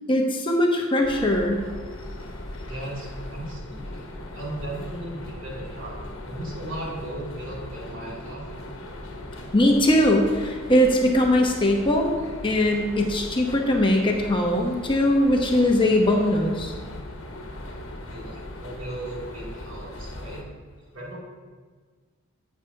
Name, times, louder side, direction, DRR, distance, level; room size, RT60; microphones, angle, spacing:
voice 1, 0.1-1.6 9.5-12.1 12.4-16.7, left 1 dB, 25° left, 1 dB, 0.9 m, -21 dB
sound 1, 1.0-20.4, left 1 dB, 65° left, 1.2 m, -38 dB
voice 2, 2.7-8.6 18.1-20.4 20.9-21.2, right 1 dB, 70° right, -5 dB, 2.9 m, -37 dB
11.5 x 8.4 x 2.8 m, 1.5 s
head